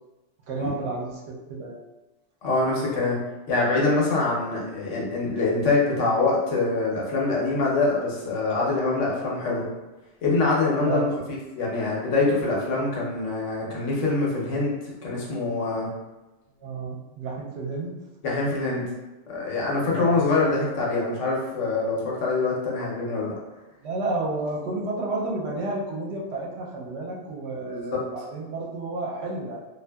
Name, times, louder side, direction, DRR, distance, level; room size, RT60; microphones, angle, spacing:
voice 1, 0.5-1.8 10.8-11.0 16.6-17.9 19.9-20.2 23.8-29.6, right 2 dB, 70° right, -3 dB, 0.8 m, -31 dB
voice 2, 2.4-3.2 3.5-9.7 10.2-15.9 18.2-18.8 19.3-23.4 27.7-28.0, left 3 dB, 80° left, -4 dB, 1.1 m, -24 dB
2.6 x 2.4 x 2.2 m, 1.1 s
omnidirectional pair, 1.2 m